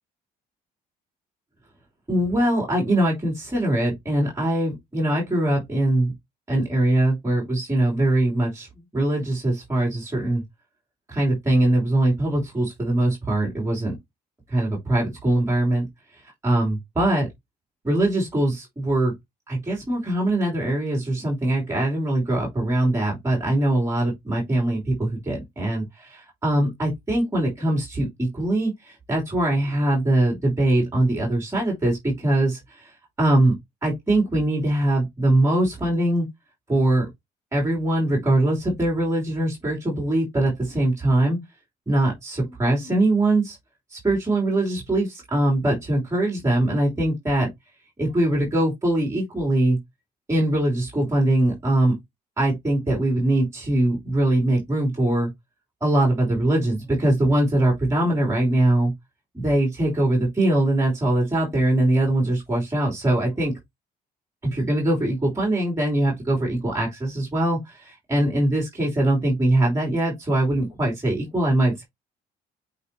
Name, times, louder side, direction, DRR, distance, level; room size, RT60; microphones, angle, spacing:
voice 1, 2.1-6.1 6.5-8.7 8.9-10.4 11.1-13.9 14.5-15.8 16.1-17.3 17.8-19.1 19.5-33.5 33.8-36.3 36.7-37.1 37.5-41.4 41.9-43.6 43.9-47.5 48.0-49.8 50.3-51.9 52.4-55.3 55.8-58.9 59.3-63.5 64.5-71.8, right 1 dB, 15° right, 3.1 m, -22 dB
8.4 x 4.1 x 2.8 m
cardioid pair, 110°, 17 cm